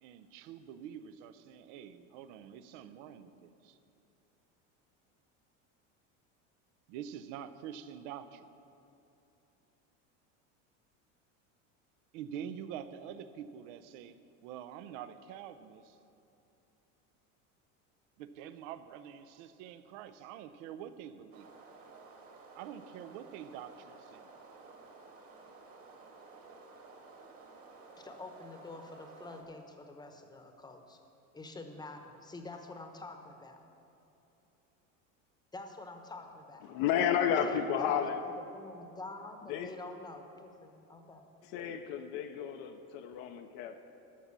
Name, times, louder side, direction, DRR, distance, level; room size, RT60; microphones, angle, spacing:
voice 1, 0.0-3.8 6.9-8.5 12.1-14.2 14.4-16.0 18.2-21.5 22.5-24.3, right 9 dB, 70° right, 12 dB, 0.7 m, -46 dB
sound 1, 21.3-29.4, right 4 dB, 35° right, 1.6 m, -54 dB
voice 2, 28.0-31.0 31.3-33.6 35.5-36.7 37.5-37.9 38.5-41.2, left 2 dB, 10° left, 5 dB, 0.9 m, -47 dB
voice 3, 36.6-38.2 39.5-39.7 41.5-43.8, left 8 dB, 60° left, 6 dB, 0.7 m, -32 dB
12.0 x 5.9 x 6.8 m, 2.8 s
supercardioid pair, 115°, 38 cm